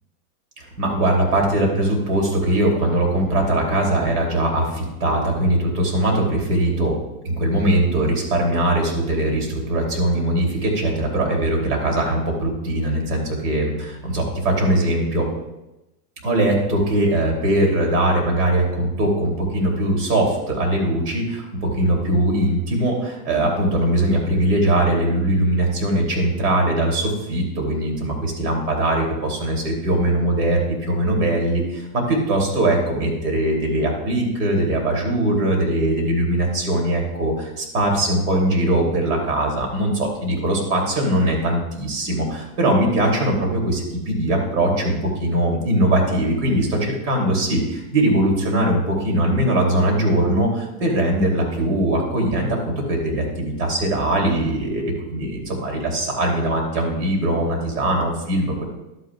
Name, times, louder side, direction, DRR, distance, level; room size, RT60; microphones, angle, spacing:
voice 1, 0.6-6.9 7.2-15.3 16.2-58.6, right 1 dB, 80° right, 1 dB, 3.1 m, -21 dB
11.5 x 9.1 x 2.4 m, 0.96 s
supercardioid pair, 175°, 45 cm